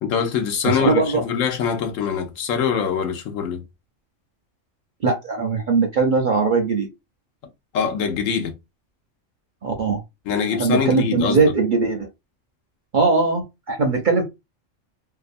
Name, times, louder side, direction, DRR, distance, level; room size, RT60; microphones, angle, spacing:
voice 1, 0.0-3.6 7.7-8.5 10.3-11.5, left 7 dB, 80° left, 1.0 m, -23 dB
voice 2, 0.8-1.2 5.0-6.9 9.6-10.0 10.6-12.1 12.9-14.2, right 4 dB, 55° right, 0.6 m, -20 dB
2.7 x 2.3 x 2.5 m
omnidirectional pair, 1.3 m